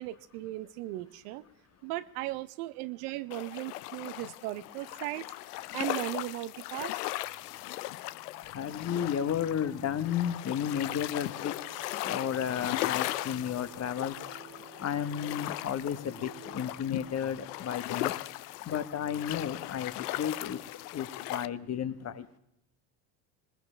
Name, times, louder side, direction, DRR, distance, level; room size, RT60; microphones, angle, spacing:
voice 1, 0.0-1.4 1.8-5.3 5.7-7.0, right 16 dB, 70° right, 14 dB, 0.9 m, -37 dB
sound 1, 3.3-21.5, left 17 dB, 80° left, 0.6 m, -38 dB
sound 2, 7.6-17.1, right 7 dB, 45° right, 2.2 m, -53 dB
voice 2, 8.5-14.1 14.8-18.1 18.7-20.6 20.9-22.3, left 8 dB, 35° left, 11 dB, 1.3 m, -33 dB
20.5 x 20.0 x 3.4 m, 0.79 s
hypercardioid pair, 80°, 47 cm